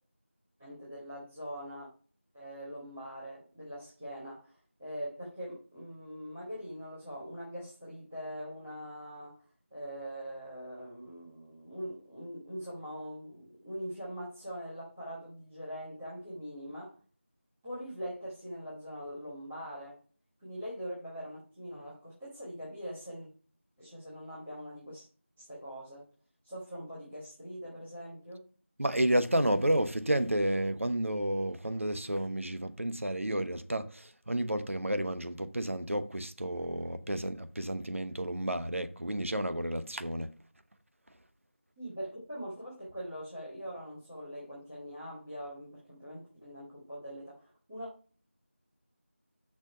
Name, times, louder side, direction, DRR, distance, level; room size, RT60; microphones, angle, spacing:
voice 1, 0.6-1.9 2.3-9.3 9.7-17.0 17.6-20.0 20.4-23.3 23.8-25.1 25.4-26.1 26.4-28.5 41.8-47.9, equal, 5° right, 1.3 m, -42 dB
voice 2, 28.8-40.3, right 1 dB, 80° right, 1.2 m, -31 dB
6.6 x 6.3 x 5.6 m
figure-of-eight pair, 175°, 7 cm